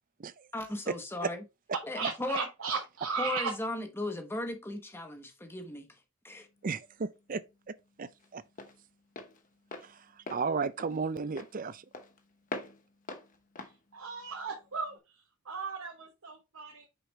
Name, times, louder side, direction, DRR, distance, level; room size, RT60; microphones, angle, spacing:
voice 1, 0.5-1.4 1.8-2.4 3.2-5.9 6.2-6.5, left 1 dB, 10° left, 1.0 m, -36 dB
voice 2, 1.9-3.5 13.9-16.9, right 4 dB, 75° right, 1.1 m, -36 dB
Walk footsteps, 6.3-15.0, left 3 dB, 40° left, 0.9 m, -46 dB
voice 3, 6.6-8.4 9.8-11.8, right 5 dB, 40° right, 0.4 m, -35 dB
6.2 x 4.9 x 3.2 m
head